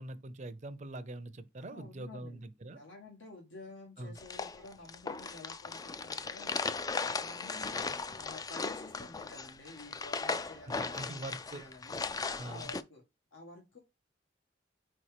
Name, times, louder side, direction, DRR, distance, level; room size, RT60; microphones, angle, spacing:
voice 1, 0.0-2.8 4.0-4.2 10.7-11.6 12.4-12.7, right 2 dB, 40° right, 0.6 m, -43 dB
voice 2, 1.6-2.4 2.7-6.6 7.0-7.8 8.1-12.0 12.4-13.0 13.3-13.8, left 2 dB, 85° left, 1.6 m, -51 dB
sound 1, 4.2-12.8, left 4 dB, 20° left, 0.3 m, -37 dB
4.5 x 4.3 x 4.9 m
head